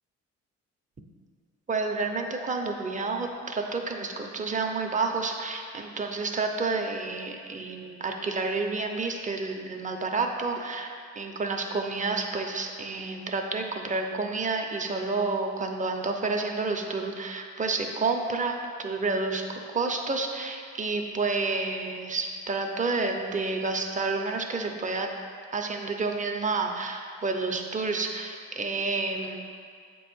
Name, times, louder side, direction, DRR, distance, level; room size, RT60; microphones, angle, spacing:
voice 1, 1.7-25.1 25.5-29.4, right 3 dB, 25° right, 3 dB, 0.7 m, -30 dB
7.7 x 3.1 x 6.1 m, 2.2 s
cardioid pair, 90°, 30 cm